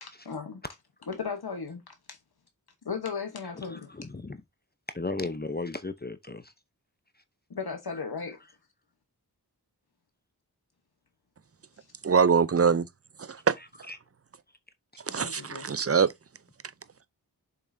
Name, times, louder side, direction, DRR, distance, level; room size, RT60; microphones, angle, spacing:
voice 1, 0.0-0.6 1.1-2.2 2.8-3.9 7.5-8.4 15.2-15.7, left 5 dB, 75° left, 1.1 m, -36 dB
voice 2, 3.7-4.4 4.9-6.5 13.9-14.0, left 3 dB, 25° left, 0.7 m, -35 dB
voice 3, 12.0-12.8 13.2-13.6 15.1-16.1, right 6 dB, 40° right, 0.6 m, -23 dB
7.0 x 5.4 x 2.6 m
wide cardioid pair, 50°, 38 cm